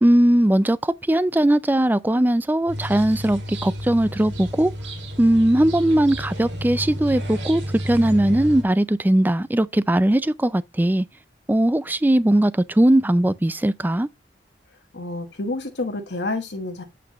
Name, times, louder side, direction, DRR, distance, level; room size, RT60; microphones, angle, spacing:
voice 1, 0.0-4.7 5.2-11.1 11.5-14.1, right 1 dB, 10° right, 0.3 m, -19 dB
sound 1, 2.7-8.6, equal, 75° right, 2.5 m, -31 dB
voice 2, 14.9-16.8, left 2 dB, 65° left, 1.2 m, -29 dB
8.1 x 5.9 x 2.9 m
head